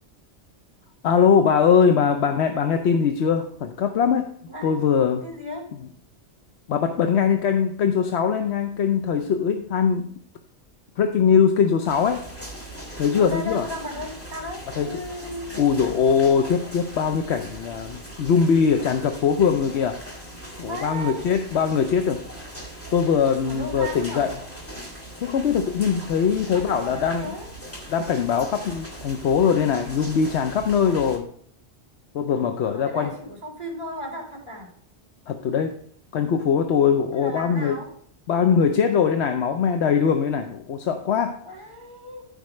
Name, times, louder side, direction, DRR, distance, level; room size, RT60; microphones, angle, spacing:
voice 1, 1.0-4.3 4.6-5.2 6.7-10.1 11.0-12.3 13.0-13.7 14.8-15.0 15.5-20.0 20.6-22.2 22.9-24.4 25.2-27.4 27.9-31.3 32.1-33.1 35.3-35.8 36.1-37.8 38.3-41.4, left 6 dB, 70° left, 6 dB, 0.9 m, -21 dB
voice 2, 4.4-4.9 5.2-5.7 13.1-15.5 20.6-21.3 23.4-24.3 26.5-27.5 30.8-31.2 32.6-34.7 37.1-37.9 41.4-42.3, equal, 45° right, -1 dB, 3.9 m, -35 dB
sound 1, 11.8-31.2, right 1 dB, 10° left, 2.0 m, -40 dB
14.0 x 5.3 x 3.1 m, 0.63 s
omnidirectional pair, 1.2 m